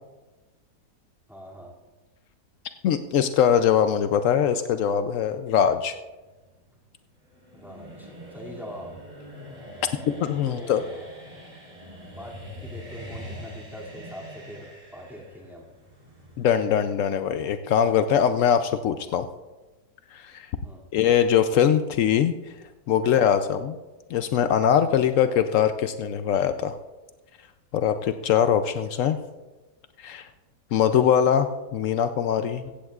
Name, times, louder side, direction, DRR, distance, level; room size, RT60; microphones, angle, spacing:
voice 1, 1.3-1.8 7.5-8.9 10.4-10.9 12.0-15.7 20.6-20.8 24.8-25.0 32.6-32.7, equal, ahead, -4 dB, 2.3 m, -42 dB
voice 2, 2.8-6.0 10.1-10.8 16.4-19.3 20.1-20.5 20.9-22.4 22.9-23.8 24.1-26.8 27.7-29.2 30.0-30.3 30.7-32.6, left 8 dB, 90° left, 9 dB, 0.6 m, -22 dB
sound 1, 6.0-16.5, equal, 25° right, 4.3 m, -43 dB
16.0 x 15.0 x 2.4 m, 1.2 s
omnidirectional pair, 1.9 m